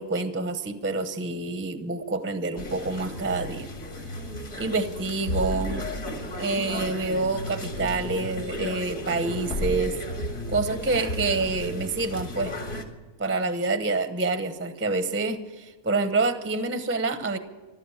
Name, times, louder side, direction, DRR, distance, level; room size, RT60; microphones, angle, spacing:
voice 1, 0.0-3.7 4.6-5.8 6.3-10.0 10.5-12.5 13.2-17.4, right 3 dB, 10° right, 9 dB, 0.7 m, -27 dB
sound 1, 2.6-12.8, left 1 dB, 70° left, 2.6 m, -34 dB
15.0 x 12.5 x 7.1 m, 1.3 s
omnidirectional pair, 1.5 m